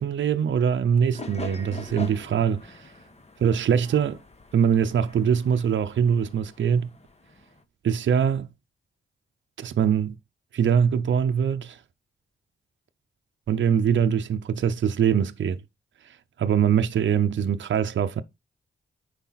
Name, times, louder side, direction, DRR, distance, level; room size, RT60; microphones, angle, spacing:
voice 1, 0.0-2.9 3.4-4.2 4.5-6.9 7.8-8.5 9.6-10.2 10.5-11.8 13.5-15.6 16.0-18.2, right 7 dB, 65° right, 0.7 m, -23 dB
sound 1, 1.1-7.6, left 2 dB, 30° left, 1.2 m, -43 dB
8.2 x 5.1 x 4.0 m
cardioid pair, 60°, 21 cm